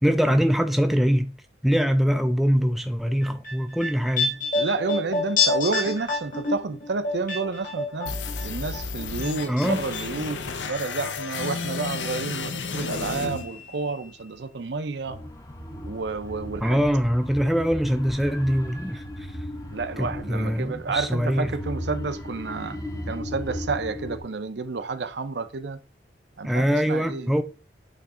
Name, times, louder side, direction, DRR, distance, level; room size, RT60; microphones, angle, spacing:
voice 1, 0.0-1.3 1.6-4.4 9.5-9.8 16.6-19.3 20.0-21.6 26.4-27.4, equal, ahead, 0.3 m, -23 dB
sound 1, 3.2-8.4 8.7-9.7 9.9-10.0, left 3 dB, 45° left, 1.8 m, -27 dB
voice 2, 4.6-8.1 8.4-15.2 15.8-16.8 19.7-22.8 23.1-25.8 26.4-27.4, right 4 dB, 65° right, 0.6 m, -30 dB
sound 2, 8.1-14.1, left 4 dB, 75° left, 0.7 m, -32 dB
sound 3, 15.0-24.2, left 1 dB, 20° left, 0.8 m, -36 dB
8.6 x 3.2 x 3.7 m
head